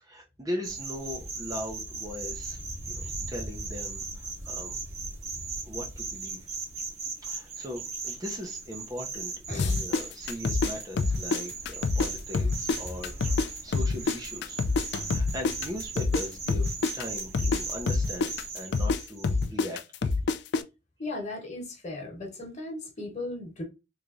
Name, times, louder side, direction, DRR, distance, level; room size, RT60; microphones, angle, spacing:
voice 1, 0.0-2.6 2.9-4.8 5.6-6.4 7.2-14.6 15.1-20.1, left 1 dB, 20° right, 0.6 m, -39 dB
sound 1, 0.6-19.4, right 4 dB, 40° right, 1.1 m, -38 dB
sound 2, 9.6-12.1 12.3-16.2 16.5-20.6, left 4 dB, 65° left, 0.3 m, -26 dB
voice 2, 21.0-23.6, left 2 dB, 40° left, 1.2 m, -36 dB
3.5 x 3.2 x 2.5 m
head